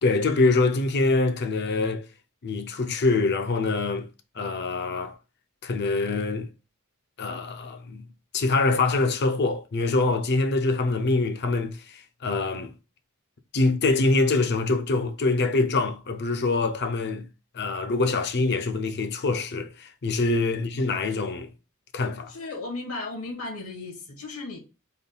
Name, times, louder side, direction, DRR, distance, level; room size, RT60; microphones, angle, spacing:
voice 1, 0.0-2.1 2.4-4.1 4.4-5.2 5.6-6.5 7.2-8.1 8.3-12.7 13.5-17.3 17.5-21.5 21.9-22.3, left 3 dB, 50° left, 0.5 m, -24 dB
voice 2, 22.3-24.6, left 3 dB, 70° left, 1.3 m, -35 dB
3.6 x 2.3 x 3.9 m
head